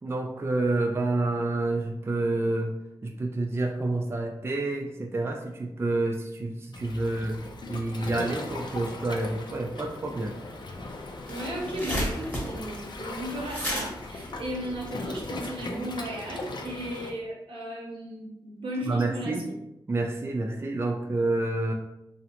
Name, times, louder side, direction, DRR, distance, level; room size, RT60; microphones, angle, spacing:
voice 1, 0.0-2.7 3.0-10.4 18.9-19.4 19.9-21.7, right 2 dB, 25° right, 2 dB, 0.3 m, -28 dB
Waves surf, 6.7-17.1, left 2 dB, 55° left, 0.4 m, -39 dB
sound 1, 10.7-10.8 11.0-15.3, equal, 15° left, 1.0 m, -34 dB
voice 2, 11.3-19.4, right 1 dB, 75° right, -2 dB, 0.7 m, -35 dB
2.7 x 2.0 x 2.9 m, 0.90 s
cardioid pair, 50°, 9 cm